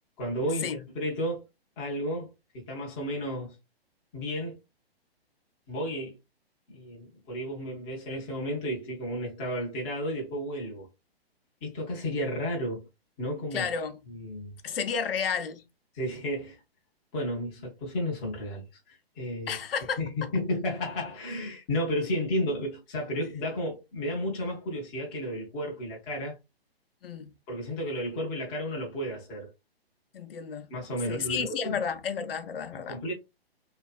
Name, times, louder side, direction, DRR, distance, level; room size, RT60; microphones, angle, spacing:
voice 1, 0.2-1.4 1.8-3.6 4.1-4.6 5.7-6.2 6.7-10.9 11.6-12.9 13.2-13.7 14.1-14.5 15.9-16.6 17.1-19.6 20.0-26.4 27.5-29.5 30.7-31.8 32.7-33.1, equal, 10° left, 0.3 m, -32 dB
voice 2, 13.5-14.0 14.6-15.6 19.5-20.0 27.0-27.3 30.1-30.7 31.1-33.0, left 6 dB, 65° left, 0.6 m, -32 dB
2.4 x 2.4 x 2.4 m
hypercardioid pair, 130°, 31 cm